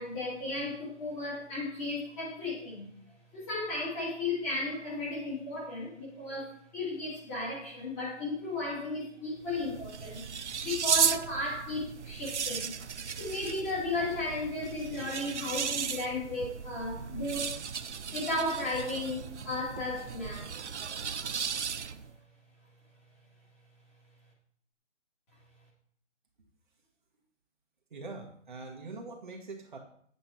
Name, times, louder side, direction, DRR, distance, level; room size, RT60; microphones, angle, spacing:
voice 1, 0.0-2.9 3.3-10.2 10.6-12.7 13.1-17.6 18.1-20.5, left 2 dB, 15° left, -5 dB, 2.2 m, -35 dB
sound 1, 9.4-22.1, right 7 dB, 65° right, 0.7 m, -35 dB
voice 2, 27.9-29.8, right 3 dB, 40° right, 1 dB, 1.5 m, -43 dB
9.9 x 8.4 x 4.3 m, 0.62 s
hypercardioid pair, 170°, 37 cm